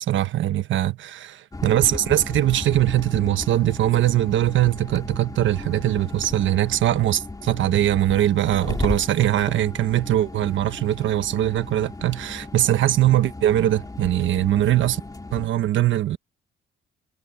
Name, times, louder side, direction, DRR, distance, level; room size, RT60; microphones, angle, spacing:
voice 1, 0.0-15.0 15.3-16.2, right 13 dB, 75° right, 1.2 m, -21 dB
sound 1, 1.5-15.5, left 2 dB, 20° left, 3.3 m, -35 dB
cardioid pair, 90°, 20 cm